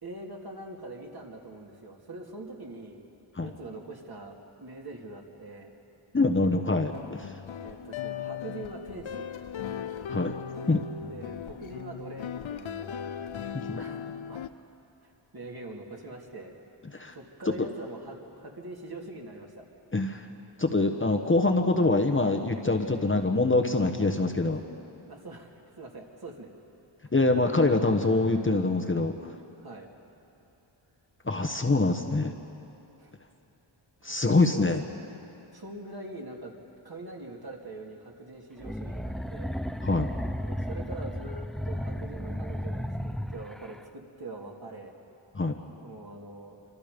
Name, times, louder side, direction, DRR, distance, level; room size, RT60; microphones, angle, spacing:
voice 1, 0.0-3.0 3.4-5.7 6.8-7.0 7.6-9.3 11.1-12.9 13.6-14.6 15.3-16.6 17.1-19.7 24.0-24.1 25.1-26.5 29.6-29.9 31.3-31.9 33.0-33.1 34.1-34.7 35.5-36.6 36.8-39.6 40.4-44.9 45.8-46.6, right 2 dB, 45° right, 0 dB, 2.9 m, -43 dB
voice 2, 6.1-7.3 10.1-10.3 10.7-10.8 13.7-13.8 16.9-17.1 17.5-17.6 19.9-20.2 20.6-24.6 27.1-29.1 31.2-32.3 34.0-34.8 39.8-40.1 45.3-45.5, left 2 dB, 25° left, 3 dB, 1.2 m, -24 dB
sound 1, 6.9-14.5, left 8 dB, 70° left, 0.8 m, -38 dB
sound 2, 38.6-43.8, equal, ahead, 0.6 m, -34 dB
27.0 x 25.0 x 5.3 m, 2.9 s
wide cardioid pair, 110°, 50 cm